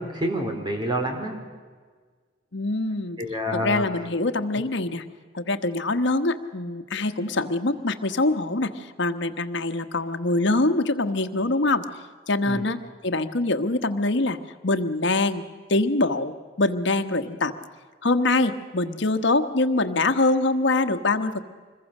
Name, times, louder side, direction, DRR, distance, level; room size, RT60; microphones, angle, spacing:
voice 1, 0.0-1.3 3.2-3.9 12.5-12.6, equal, 25° right, 3 dB, 3.6 m, -27 dB
voice 2, 2.5-3.2 3.5-5.0 5.3-11.8 12.3-12.8 13.0-14.4 14.6-15.4 15.7-17.5 18.0-21.4, left 2 dB, 65° left, 8 dB, 1.2 m, -24 dB
26.0 x 21.5 x 6.6 m, 1.5 s
head